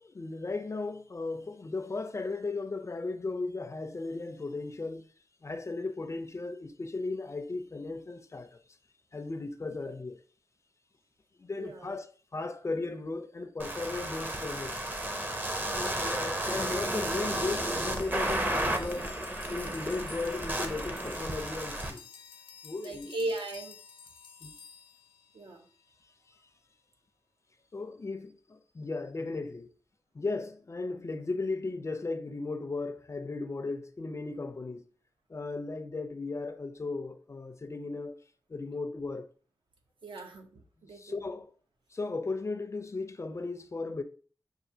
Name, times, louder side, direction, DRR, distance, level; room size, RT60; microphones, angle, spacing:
voice 1, 0.0-5.1 5.4-8.6 9.1-10.2 11.4-14.9 15.7-19.1 19.5-22.0 22.6-23.1 24.4-24.5 27.7-29.7 30.1-34.8 35.3-38.1 38.5-39.3 40.9-41.5 41.9-44.0, left 3 dB, 35° left, 0.4 m, -36 dB
voice 2, 11.6-11.9 22.8-23.7 25.3-25.7 40.0-41.2, right 2 dB, 75° right, 0.8 m, -38 dB
sound 1, 13.6-21.9, right 1 dB, 20° right, 0.6 m, -33 dB
sound 2, 17.2-25.8, left 6 dB, 90° left, 0.5 m, -51 dB
5.9 x 2.4 x 2.7 m
wide cardioid pair, 85°, 8 cm